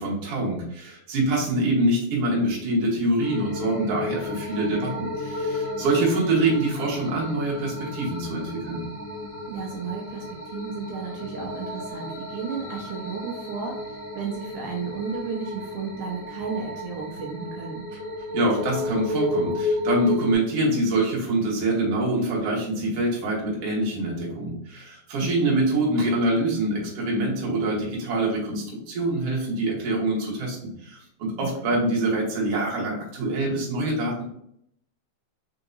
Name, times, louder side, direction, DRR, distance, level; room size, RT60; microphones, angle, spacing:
voice 1, 0.0-8.8 18.3-34.2, right 2 dB, 55° right, -3 dB, 2.2 m, -25 dB
sound 1, 3.2-20.3, left 2 dB, 65° left, 1.0 m, -33 dB
voice 2, 9.5-17.8 25.2-25.6 31.4-31.8, right 5 dB, 80° right, -1 dB, 2.2 m, -34 dB
4.9 x 3.8 x 2.6 m, 0.71 s
omnidirectional pair, 3.7 m